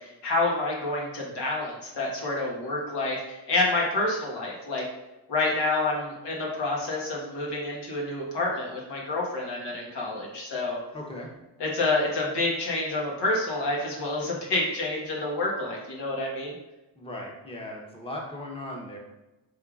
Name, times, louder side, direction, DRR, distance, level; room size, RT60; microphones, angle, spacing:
voice 1, 0.0-4.8 5.3-10.8 11.6-16.5, left 2 dB, 80° left, -3 dB, 1.4 m, -28 dB
voice 2, 10.9-11.3 17.0-19.0, left 1 dB, 15° left, -1 dB, 0.9 m, -37 dB
5.5 x 3.7 x 2.4 m, 1.0 s
cardioid pair, 85°, 40 cm